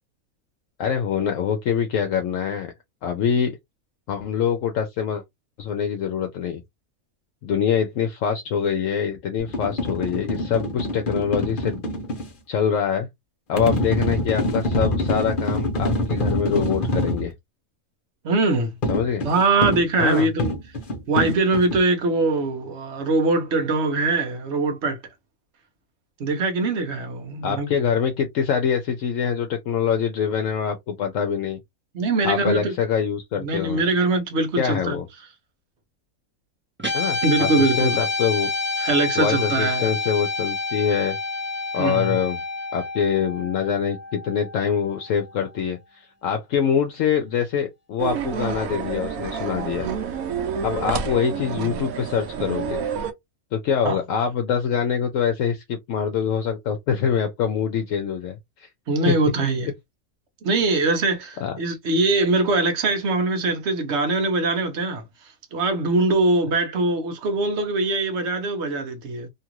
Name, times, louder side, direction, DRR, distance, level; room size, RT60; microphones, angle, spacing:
voice 1, 0.8-2.7 3.0-3.6 4.1-5.2 5.6-6.6 7.4-11.8 12.5-13.1 13.5-17.3 18.9-19.2 20.0-20.3 27.4-31.6 32.2-33.8 34.6-35.1 36.9-38.5 39.2-41.2 41.7-42.4 42.7-49.9 50.6-52.8 53.5-58.7 59.1-59.2 61.4-61.5, left 7 dB, 70° left, 0.9 m, -24 dB
sound 1, 9.4-12.3 13.6-17.3 18.8-21.8, left 1 dB, 45° left, 0.9 m, -25 dB
voice 2, 18.2-18.7 19.2-20.6 21.1-25.0 26.2-27.7 31.9-32.7 33.4-35.0 37.2-38.0 38.8-39.9 41.8-42.2 53.8-54.0 58.9-59.7 60.4-65.0 65.5-69.3, right 3 dB, 55° right, 1.1 m, -22 dB
Guitar, 36.8-45.3, left 3 dB, 10° right, 0.6 m, -28 dB
sound 2, 48.0-53.1, right 7 dB, 85° right, 1.1 m, -29 dB
2.9 x 2.4 x 2.9 m
omnidirectional pair, 1.5 m